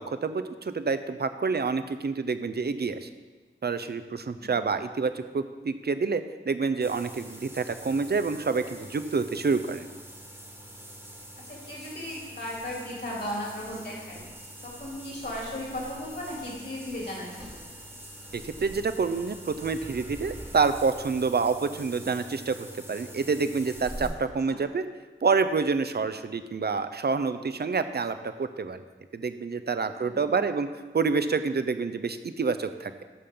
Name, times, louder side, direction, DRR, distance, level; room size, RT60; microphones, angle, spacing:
voice 1, 0.0-3.1 3.6-9.9 18.3-22.6 22.9-24.8 25.2-28.8 29.1-30.7 30.9-33.0, right 4 dB, 50° right, 10 dB, 0.5 m, -28 dB
sound 1, 6.8-24.1, right 1 dB, 10° right, 1.4 m, -44 dB
voice 2, 11.5-14.2 14.6-17.7 24.5-24.6 30.0-30.2, left 1 dB, 50° left, -4 dB, 2.9 m, -36 dB
13.5 x 5.5 x 3.7 m, 1.3 s
wide cardioid pair, 60°, 21 cm